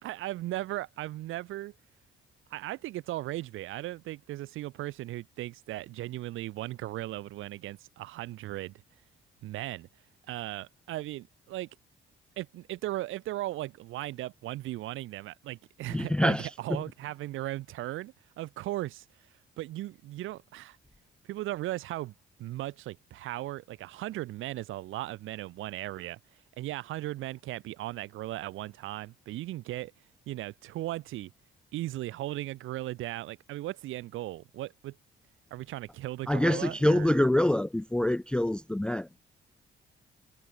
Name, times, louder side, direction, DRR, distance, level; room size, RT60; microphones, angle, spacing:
voice 1, 0.0-1.7 2.5-8.8 9.4-9.9 10.3-11.7 12.4-19.0 19.6-20.8 21.3-22.1 22.4-26.2 26.6-29.9 30.3-31.3 31.7-34.9 35.5-37.2, right 16 dB, 85° right, 1.3 m, -37 dB
voice 2, 15.9-16.8 36.3-39.2, left 1 dB, 5° left, 0.4 m, -26 dB
cardioid pair, 90°, 20 cm